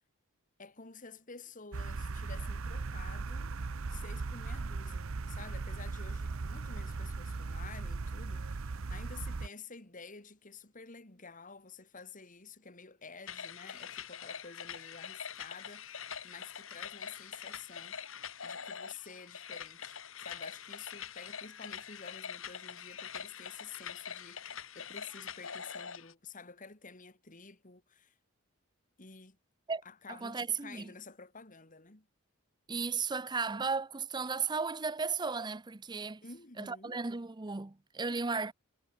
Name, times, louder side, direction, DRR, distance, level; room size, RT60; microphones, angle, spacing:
voice 1, 0.6-3.5 3.9-18.0 18.4-28.1 29.0-29.4 29.8-32.1 36.2-37.0, left 4 dB, 40° left, 2.2 m, -51 dB
sound 1, 1.7-9.5, right 3 dB, 70° right, 0.7 m, -38 dB
sound 2, 13.3-26.1, left 7 dB, 65° left, 2.3 m, -44 dB
voice 2, 30.1-30.9 32.7-36.2 36.6-38.5, right 4 dB, 20° right, 0.6 m, -35 dB
head